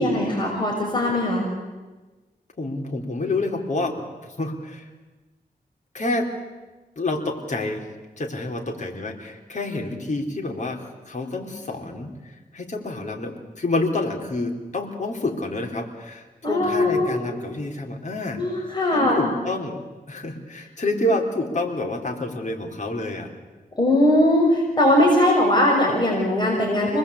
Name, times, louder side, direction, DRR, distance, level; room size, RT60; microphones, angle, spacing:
voice 1, 0.0-1.5 16.4-17.2 18.4-19.3 23.8-27.0, left 1 dB, 30° left, -2 dB, 6.4 m, -20 dB
voice 2, 2.6-4.9 5.9-6.3 7.0-7.9 8.2-18.4 18.9-19.8 20.1-23.3, left 2 dB, 50° left, 2 dB, 4.2 m, -28 dB
26.5 x 20.0 x 8.5 m, 1.2 s
cardioid pair, 65°, 16 cm